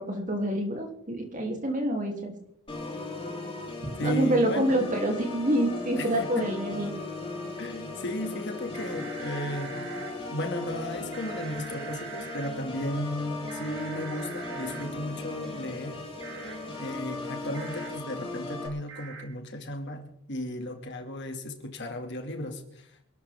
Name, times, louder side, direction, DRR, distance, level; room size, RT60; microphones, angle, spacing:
voice 1, 0.0-2.3 4.0-6.9, right 1 dB, 35° right, 2 dB, 3.0 m, -27 dB
Organ, 2.7-18.7, left 2 dB, 25° left, 3.8 m, -37 dB
voice 2, 4.0-4.7 5.9-6.5 7.6-9.8 10.3-16.0 16.8-22.9, left 1 dB, 50° left, 4 dB, 2.3 m, -35 dB
sound 1, 8.7-10.1 11.1-12.5 13.5-14.8 16.2-16.6 17.5-17.9 18.9-19.2, right 6 dB, 50° right, 2.7 m, -43 dB
26.5 x 12.5 x 3.6 m, 0.70 s
head